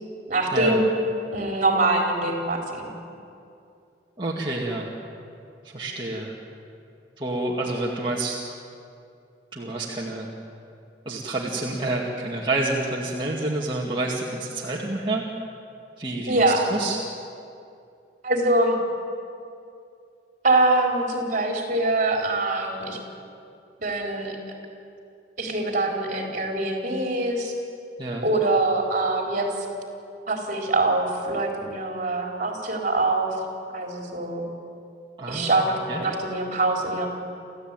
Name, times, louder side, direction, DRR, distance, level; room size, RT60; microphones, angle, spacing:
voice 1, 0.3-0.8 1.3-2.9 16.3-16.7 18.2-18.8 20.4-23.0 23.8-24.4 25.4-27.5 28.2-29.5 30.3-33.3 33.7-34.4 35.3-37.1, right 2 dB, 45° right, 1 dB, 4.1 m, -24 dB
voice 2, 4.2-4.9 5.7-6.4 7.2-8.4 9.5-10.3 11.1-15.2 16.0-17.0 28.0-28.3 35.2-35.5 35.9-36.0, right 2 dB, 25° right, -4 dB, 2.2 m, -28 dB
28.0 x 15.0 x 9.1 m, 2.5 s
head